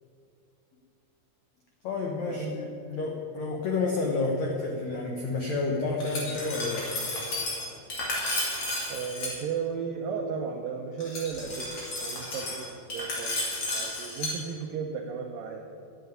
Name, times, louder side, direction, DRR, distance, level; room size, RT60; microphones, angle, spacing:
voice 1, 1.8-6.9, left 3 dB, 80° left, 0 dB, 1.6 m, -30 dB
Glass, 6.0-9.3 11.0-14.3, left 2 dB, 40° left, 3.1 m, -33 dB
voice 2, 8.9-15.6, right 6 dB, 90° right, 2 dB, 2.0 m, -35 dB
11.0 x 7.9 x 9.4 m, 2.6 s
omnidirectional pair, 5.0 m